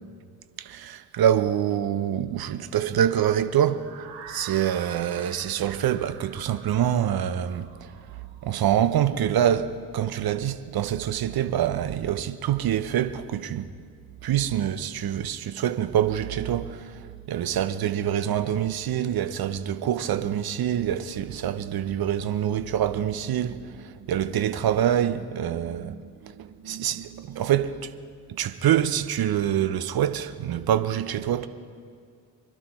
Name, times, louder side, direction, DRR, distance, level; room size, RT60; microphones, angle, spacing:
voice 1, 0.6-3.8 4.3-8.0 8.4-13.7 14.2-27.9 28.3-31.5, right 10 dB, 50° right, 1.1 m, -26 dB
sound 1, 3.7-9.6, right 6 dB, 75° right, 2.7 m, -46 dB
25.0 x 12.0 x 4.4 m
hypercardioid pair, 55°, 47 cm